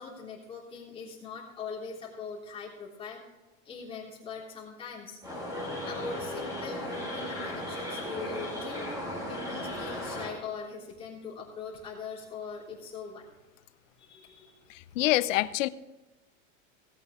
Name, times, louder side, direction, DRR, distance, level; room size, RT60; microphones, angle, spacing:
voice 1, 0.0-3.2 3.6-5.2 5.8-13.3 14.0-14.6, left 5 dB, 15° left, -6 dB, 3.3 m, -42 dB
sound 1, 5.2-10.3, left 1 dB, 10° right, 2.3 m, -36 dB
voice 2, 14.7-15.7, left 16 dB, 70° left, 15 dB, 0.7 m, -26 dB
18.0 x 8.7 x 3.6 m, 1.1 s
supercardioid pair, 165°, 39 cm